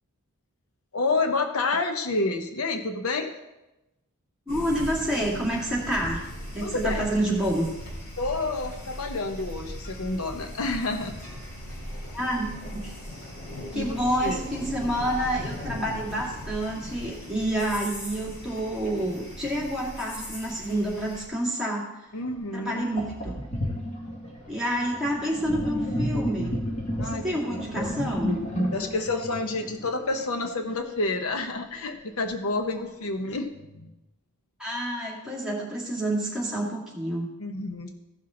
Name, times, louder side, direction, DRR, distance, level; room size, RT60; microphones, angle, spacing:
voice 1, 0.9-3.3 6.6-7.0 8.2-11.1 13.7-14.4 22.1-22.9 27.0-27.2 27.5-27.9 28.7-33.9 37.4-37.9, left 3 dB, 70° left, 6 dB, 0.8 m, -29 dB
sound 1, 4.5-21.2, equal, 50° left, 3.4 m, -38 dB
voice 2, 4.5-6.2 6.5-7.7 12.1-12.9 13.7-21.9 22.5-23.4 24.5-26.6 27.0-28.4 34.6-37.3, right 1 dB, 5° right, -6 dB, 2.5 m, -28 dB
Sink (filling or washing), 22.3-22.4 23.0-30.3, equal, 30° left, 1.7 m, -31 dB
15.5 x 5.9 x 3.8 m, 0.96 s
head